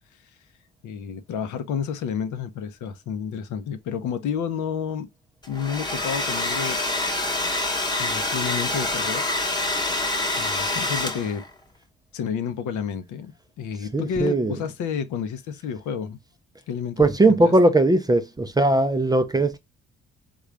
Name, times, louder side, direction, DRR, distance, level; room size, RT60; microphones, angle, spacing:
voice 1, 0.8-5.1 5.5-6.8 8.0-9.2 10.4-11.4 12.1-13.3 13.6-16.2 16.7-17.5, left 7 dB, 75° left, 0.6 m, -30 dB
Domestic sounds home sounds, 5.4-11.5, left 2 dB, 15° left, 0.9 m, -26 dB
voice 2, 13.9-14.6 17.0-19.6, right 2 dB, 15° right, 0.4 m, -19 dB
3.7 x 2.3 x 3.1 m
cardioid pair, 90°, 30 cm